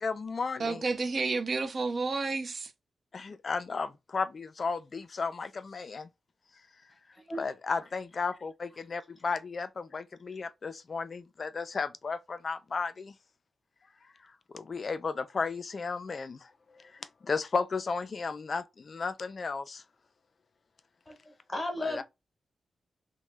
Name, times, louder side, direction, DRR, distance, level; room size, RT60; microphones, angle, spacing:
voice 1, 0.0-0.8 3.1-6.1 7.4-13.2 14.5-19.8 21.8-22.0, left 4 dB, 40° left, 0.3 m, -34 dB
voice 2, 0.6-2.7, right 3 dB, 40° right, 0.4 m, -30 dB
voice 3, 21.1-22.0, left 1 dB, 15° left, 0.9 m, -35 dB
3.0 x 2.1 x 3.2 m
wide cardioid pair, 165°, 0 cm